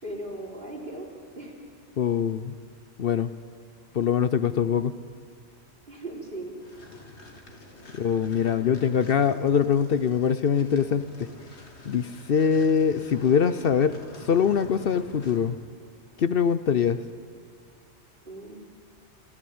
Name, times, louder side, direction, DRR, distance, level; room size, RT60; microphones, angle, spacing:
voice 1, 0.0-1.1 1.4-1.6 5.9-6.5 18.3-18.5, right 1 dB, 50° right, -1 dB, 3.9 m, -37 dB
voice 2, 2.0-2.6 3.0-3.3 3.9-4.9 7.9-11.3 11.8-15.6 16.2-17.0, left 7 dB, 60° left, 12 dB, 0.9 m, -23 dB
sound 1, 6.6-15.6, left 2 dB, 80° left, 2.5 m, -48 dB
26.0 x 14.5 x 8.7 m, 2.2 s
omnidirectional pair, 1.1 m